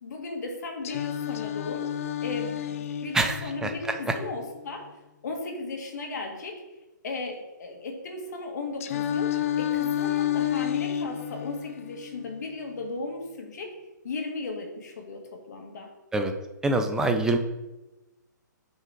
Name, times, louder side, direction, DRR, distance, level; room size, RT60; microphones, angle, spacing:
voice 1, 0.0-1.9 2.2-4.9 5.2-6.6 7.0-13.7 14.0-15.9, left 3 dB, 60° left, 2 dB, 1.6 m, -36 dB
Singing, 0.8-4.8 8.8-12.8, left 10 dB, 45° left, 0.5 m, -31 dB
voice 2, 3.1-3.7 16.1-16.3 16.6-17.4, right 2 dB, 5° right, 6 dB, 0.5 m, -25 dB
7.5 x 3.7 x 4.7 m, 1.0 s
figure-of-eight pair, 130°, 10 cm